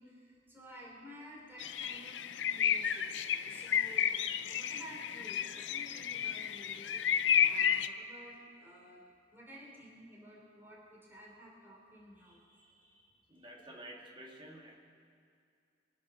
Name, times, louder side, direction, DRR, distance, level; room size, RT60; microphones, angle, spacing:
voice 1, 0.0-3.1 3.4-9.0 9.3-13.5, equal, 10° right, -4 dB, 3.6 m, -53 dB
sound 1, 1.6-7.9, left 8 dB, 80° left, 0.5 m, -32 dB
voice 2, 13.3-14.7, right 1 dB, 25° right, -1 dB, 2.1 m, -50 dB
24.0 x 8.4 x 6.3 m, 2.4 s
head